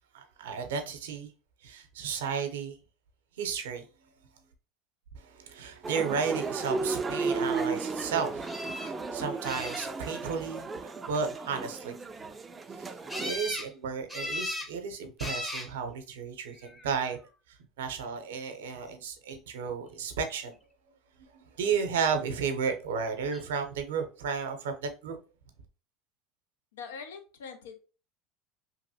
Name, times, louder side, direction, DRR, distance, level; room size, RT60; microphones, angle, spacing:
voice 1, 0.1-1.3 1.6-2.8 3.4-3.8 5.1-12.0 12.8-17.2 17.5-20.6 21.6-25.2, right 6 dB, 85° right, 0.6 m, -33 dB
sound 1, 5.8-13.3, right 4 dB, 25° right, 0.3 m, -34 dB
sound 2, 8.5-8.9 9.4-10.2 13.1-13.7 14.1-14.7 15.2-15.7 16.6-17.1 23.3-23.4 23.8-23.9, left 1 dB, 10° left, 0.6 m, -37 dB
voice 2, 26.7-27.8, left 5 dB, 90° left, 0.5 m, -43 dB
2.9 x 2.6 x 2.7 m
hypercardioid pair, 90°, 0 cm